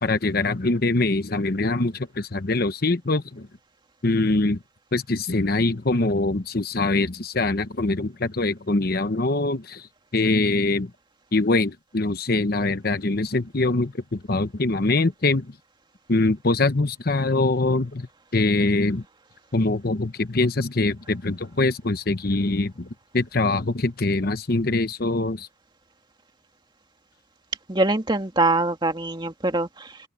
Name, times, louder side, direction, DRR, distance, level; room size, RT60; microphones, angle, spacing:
voice 1, 0.0-3.5 4.0-4.6 4.9-9.9 10.1-10.9 11.3-15.5 16.1-18.1 18.3-19.0 19.5-22.9 23.1-25.5, left 2 dB, 50° left, 1.0 m, -23 dB
voice 2, 27.7-30.0, right 2 dB, 25° right, 2.0 m, -23 dB
open air
head